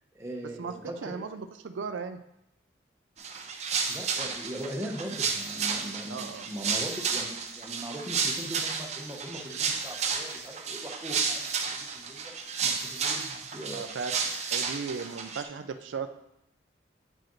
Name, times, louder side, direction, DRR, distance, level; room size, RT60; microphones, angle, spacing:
voice 1, 0.1-1.2 3.9-12.3 12.6-13.8, right 1 dB, 15° right, -1 dB, 0.9 m, -40 dB
voice 2, 1.0-2.2 6.1-6.5 13.7-14.1 14.5-16.1, right 5 dB, 90° right, 8 dB, 0.5 m, -36 dB
sound 1, 3.2-15.4, right 5 dB, 35° right, 0.6 m, -32 dB
8.5 x 4.9 x 3.1 m, 0.82 s
head